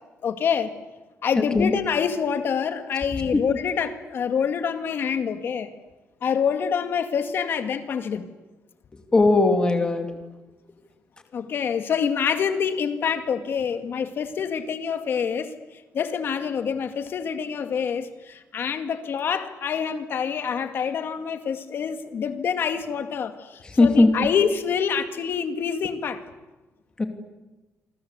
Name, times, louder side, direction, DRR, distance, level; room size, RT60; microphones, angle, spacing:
voice 1, 0.2-0.7 1.2-5.7 6.2-8.3 11.3-15.5 15.9-26.2, left 7 dB, 45° left, 9 dB, 2.1 m, -26 dB
voice 2, 9.1-10.1 23.7-24.1 27.0-27.1, left 2 dB, 15° left, 6 dB, 2.6 m, -18 dB
28.5 x 24.5 x 8.2 m, 1.1 s
cardioid pair, 180°, 5 cm